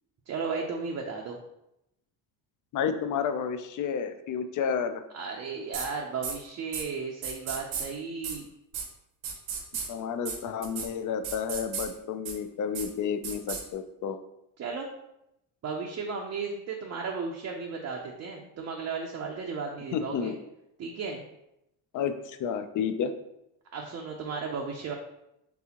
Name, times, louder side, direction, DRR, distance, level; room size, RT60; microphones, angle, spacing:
voice 1, 0.3-1.4 5.1-8.5 14.6-14.9 15.6-20.3 20.8-21.2 23.7-24.9, right 5 dB, 35° right, 0 dB, 0.5 m, -35 dB
voice 2, 2.7-5.0 9.9-14.2 19.9-20.3 21.9-23.1, left 7 dB, 45° left, 10 dB, 0.4 m, -31 dB
sound 1, 5.7-5.9 6.2-6.3 6.7-6.8 7.2-7.9 8.2-8.4 8.7-8.8 9.2-9.9 10.3-10.4 10.6-10.9 11.2-11.9 12.3-12.4 12.7-12.9 13.2-13.6, right 6 dB, 85° right, 1.0 m, -34 dB
4.0 x 3.6 x 2.9 m, 0.85 s
cardioid pair, 125°, 44 cm